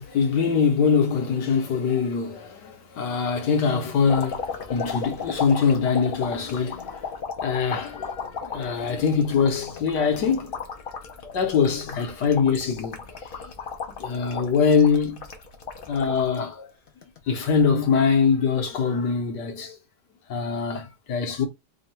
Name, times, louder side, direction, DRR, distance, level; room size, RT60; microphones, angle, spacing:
voice 1, 0.0-7.1 7.4-10.5 11.2-13.0 13.7-15.2 15.9-16.7 17.3-19.8 20.3-21.5, left 6 dB, 70° left, 1.6 m, -23 dB
sound 1, 4.1-16.4 16.9-17.6 18.6-18.8, left 6 dB, 50° left, 0.6 m, -35 dB
3.6 x 2.3 x 4.2 m
omnidirectional pair, 1.9 m